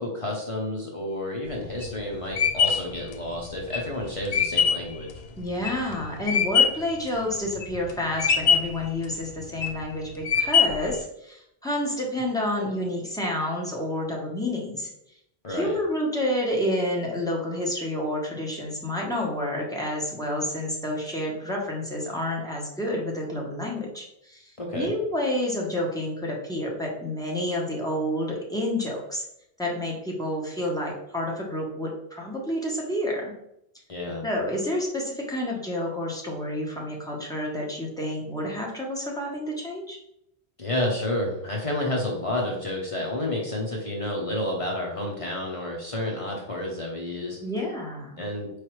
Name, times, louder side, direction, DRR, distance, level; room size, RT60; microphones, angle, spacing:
voice 1, 0.0-5.1 15.4-15.8 24.6-24.9 33.9-34.2 40.6-47.4 48.2-48.6, left 1 dB, 35° left, -1 dB, 0.7 m, -30 dB
sound 1, 1.5-6.9 7.4-7.9 8.2-8.9 9.4-9.8 10.3-11.0, left 6 dB, 75° left, 0.8 m, -22 dB
voice 2, 5.4-14.9 15.5-29.2 29.6-33.3 34.2-40.0 47.4-48.3, left 1 dB, 5° left, -3 dB, 0.9 m, -29 dB
4.5 x 3.3 x 3.0 m, 0.78 s
omnidirectional pair, 1.0 m